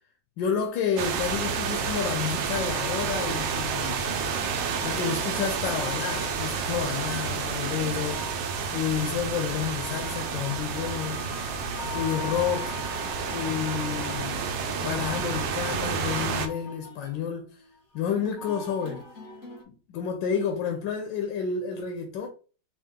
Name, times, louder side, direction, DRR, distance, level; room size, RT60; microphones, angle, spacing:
voice 1, 0.4-4.0 4.8-8.2 8.7-11.2 11.9-12.7 13.3-14.4 14.8-17.5 17.9-19.0 19.7-22.3, left 7 dB, 90° left, 1.4 m, -30 dB
sound 1, 1.0-16.5, right 6 dB, 80° right, 1.4 m, -30 dB
sound 2, 2.6-19.6, left 4 dB, 30° left, 1.2 m, -43 dB
4.6 x 2.4 x 3.6 m
omnidirectional pair, 2.0 m